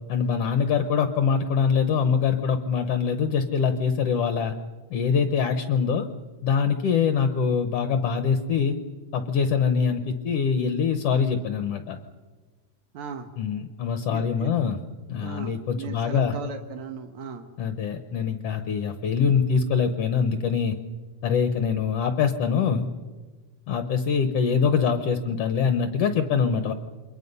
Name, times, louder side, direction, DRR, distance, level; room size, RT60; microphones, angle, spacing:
voice 1, 0.1-4.5 4.9-6.1 6.4-8.8 9.1-12.0 13.4-14.8 15.1-16.3 17.6-20.8 21.2-22.9 23.7-26.7, left 6 dB, 70° left, 8 dB, 1.5 m, -24 dB
voice 2, 12.9-13.3 14.1-14.5 15.2-17.5, right 5 dB, 65° right, 4 dB, 1.4 m, -37 dB
28.5 x 23.0 x 5.5 m, 1.3 s
omnidirectional pair, 4.1 m